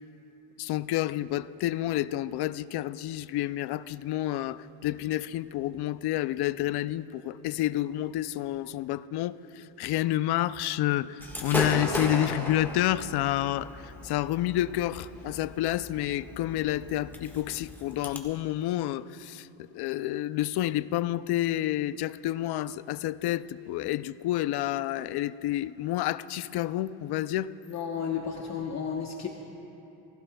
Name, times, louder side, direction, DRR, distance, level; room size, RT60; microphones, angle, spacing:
voice 1, 0.6-19.5 19.7-27.5, left 14 dB, 55° left, 0.5 m, -29 dB
Gunshot gunfire / Fireworks, 11.2-18.2, left 1 dB, 5° left, 1.5 m, -36 dB
voice 2, 27.7-29.3, left 7 dB, 35° left, 1.0 m, -32 dB
28.5 x 16.0 x 2.3 m
cardioid pair, 125°, 47 cm